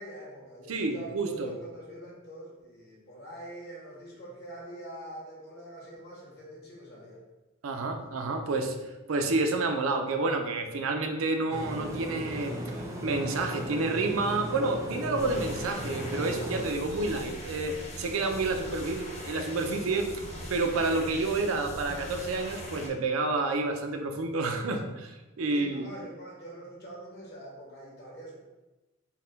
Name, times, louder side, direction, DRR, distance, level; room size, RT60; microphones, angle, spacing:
voice 1, 0.0-7.2 8.0-8.1 18.5-18.7 24.7-24.9 25.5-28.4, right 1 dB, 55° left, -3 dB, 1.2 m, -44 dB
voice 2, 0.7-1.5 7.6-8.8 9.1-12.6 13.0-25.9, right 3 dB, 85° right, 4 dB, 0.5 m, -29 dB
sound 1, 11.5-16.6, equal, 15° right, 0.5 m, -36 dB
sound 2, 15.2-22.9, equal, 35° left, 0.7 m, -41 dB
4.0 x 2.1 x 3.9 m, 1.1 s
head